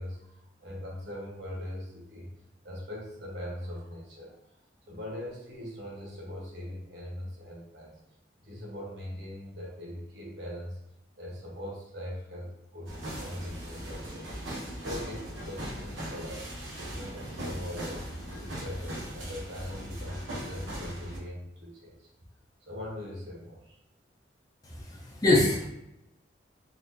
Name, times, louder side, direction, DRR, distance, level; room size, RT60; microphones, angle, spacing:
voice 1, 0.0-2.3 2.6-4.4 4.9-8.0 8.4-10.8 11.2-14.3 14.7-16.5 16.9-18.0 18.4-22.1 22.6-23.8, left 1 dB, 60° right, -3 dB, 1.1 m, -41 dB
sound 1, 12.9-21.2, equal, 90° right, 1.0 m, -39 dB
voice 2, 24.6-25.7, left 2 dB, 20° left, -5 dB, 0.6 m, -25 dB
4.2 x 2.6 x 2.7 m, 0.85 s
head